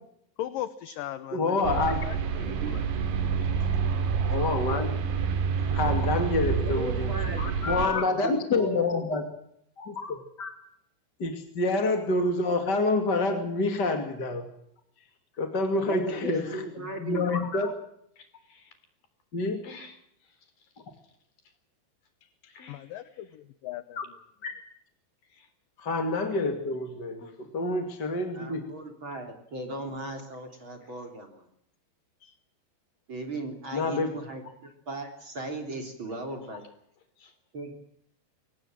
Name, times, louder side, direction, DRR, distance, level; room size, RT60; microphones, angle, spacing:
voice 1, 0.4-2.8 22.7-24.2, left 12 dB, 70° left, 13 dB, 2.2 m, -38 dB
voice 2, 1.3-2.0 4.3-5.0 5.6-7.1 7.4-9.2 9.8-10.5 11.2-14.5 15.4-16.4 17.0-17.7 19.3-19.7 24.0-24.1 24.4-24.5 25.8-28.7 33.7-34.1, left 3 dB, 30° left, 6 dB, 2.3 m, -27 dB
sound 1, 1.6-7.9, right 6 dB, 80° right, 4.4 m, -28 dB
voice 3, 2.4-2.8 3.2-3.3 6.5-7.6 7.9-9.1 15.7-17.3 28.3-31.5 33.1-36.6 37.5-37.7, right 2 dB, 30° right, 4 dB, 3.6 m, -37 dB
voice 4, 3.4-3.7 18.2-18.8 19.6-20.7 22.5-22.9 25.2-25.5 27.2-27.4 32.2-32.4 37.2-37.3, left 4 dB, 55° left, 10 dB, 5.0 m, -53 dB
24.0 x 19.0 x 7.6 m, 0.70 s
omnidirectional pair, 5.0 m